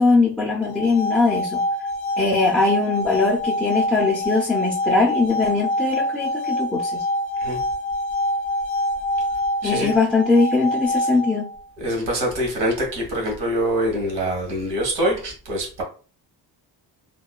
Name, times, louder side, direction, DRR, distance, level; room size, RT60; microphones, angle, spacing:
voice 1, 0.0-1.6 2.2-7.0 9.6-11.5, left 3 dB, ahead, -2 dB, 0.3 m, -21 dB
sound 1, 0.6-11.6, left 1 dB, 50° left, 0.6 m, -25 dB
voice 2, 9.6-9.9 11.8-15.8, equal, 85° right, 0 dB, 1.4 m, -24 dB
2.9 x 2.2 x 2.3 m, 0.38 s
cardioid pair, 125°, 41 cm